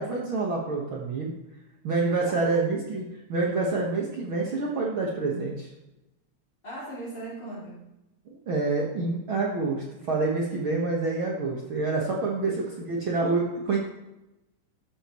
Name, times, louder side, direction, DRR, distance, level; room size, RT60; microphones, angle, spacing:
voice 1, 0.0-1.3 1.8-3.0 3.3-5.7 8.5-13.8, right 3 dB, 50° right, -3 dB, 2.0 m, -27 dB
voice 2, 2.2-2.7 6.6-7.8 12.3-12.9, right 1 dB, 25° left, -5 dB, 5.0 m, -38 dB
14.0 x 12.5 x 3.1 m, 0.94 s
omnidirectional pair, 3.4 m